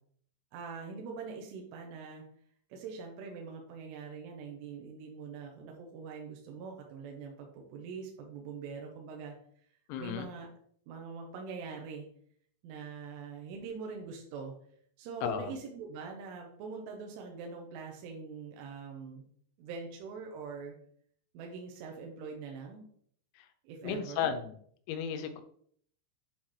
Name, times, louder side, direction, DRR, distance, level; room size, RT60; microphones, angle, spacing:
voice 1, 0.5-2.2 2.7-9.4 10.0-10.5 10.9-12.1 12.6-14.5 15.0-19.3 19.6-20.8 21.3-22.9 23.6-24.3, right 5 dB, 75° right, 1 dB, 2.8 m, -43 dB
voice 2, 9.9-10.3 15.2-15.5 23.4-23.5 23.8-24.6 24.9-25.4, left 8 dB, 80° left, 8 dB, 2.8 m, -34 dB
8.5 x 3.8 x 3.1 m, 0.62 s
omnidirectional pair, 5.4 m